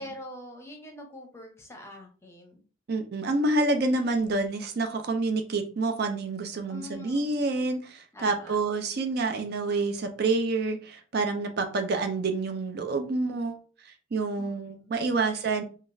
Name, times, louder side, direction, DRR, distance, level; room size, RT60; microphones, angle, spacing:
voice 1, 0.0-2.6 6.7-7.3 8.1-8.6 14.4-14.6, left 1 dB, 15° left, 2 dB, 0.7 m, -44 dB
voice 2, 2.9-13.6 13.8-15.6, right 3 dB, 55° right, 6 dB, 0.4 m, -28 dB
3.6 x 2.3 x 2.6 m, 0.38 s
head